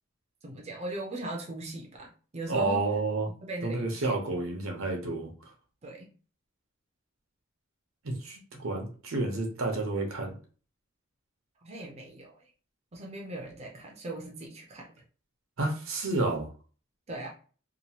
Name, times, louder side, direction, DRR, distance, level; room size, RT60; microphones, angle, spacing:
voice 1, 0.4-2.8 3.4-4.1 5.8-6.1 11.6-12.3 12.9-14.9 17.1-17.3, right 1 dB, 30° right, 0 dB, 0.5 m, -39 dB
voice 2, 2.5-3.3 3.6-5.3 8.0-10.3 15.6-16.5, right 2 dB, 80° right, 2 dB, 0.9 m, -30 dB
2.9 x 2.3 x 2.8 m, 0.39 s
head